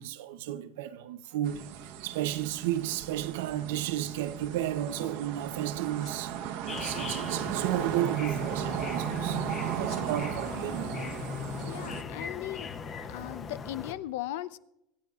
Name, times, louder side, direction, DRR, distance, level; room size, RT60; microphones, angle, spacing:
voice 1, 0.0-10.9, right 12 dB, 90° right, 0.7 m, -33 dB
sound 1, 1.4-12.0, right 10 dB, 70° right, 1.0 m, -36 dB
sound 2, 4.3-4.6 4.9-5.1 5.8-6.2 6.4-6.9 8.2-8.4 8.7-8.9 9.7-10.4, left 8 dB, 40° left, 2.0 m, -50 dB
sound 3, 6.7-13.9, left 5 dB, 25° left, 0.7 m, -39 dB
voice 2, 11.7-12.7 13.1-14.6, left 14 dB, 90° left, 0.6 m, -38 dB
25.5 x 9.1 x 2.4 m
cardioid pair, 170°, 0 cm